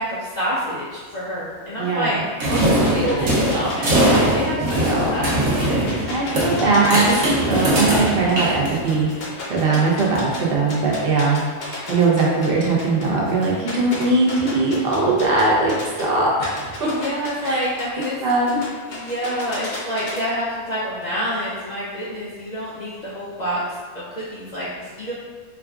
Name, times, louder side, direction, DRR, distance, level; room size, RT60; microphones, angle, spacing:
voice 1, 0.0-2.2 2.5-6.2 16.8-18.2 18.9-23.6 23.9-25.1, equal, 80° left, -9 dB, 0.4 m, -28 dB
sound 1, 2.4-9.1, right 1 dB, 75° right, 1.2 m, -21 dB
sound 2, 2.8-8.0 8.3-10.4 10.7-16.0 16.4-20.2, left 2 dB, 55° left, 0.8 m, -34 dB
voice 2, 4.7-5.1 6.1-16.9 17.4-17.6 18.2-18.6, right 3 dB, 50° right, -4 dB, 0.7 m, -20 dB
4.6 x 2.3 x 2.4 m, 1.5 s
omnidirectional pair, 1.5 m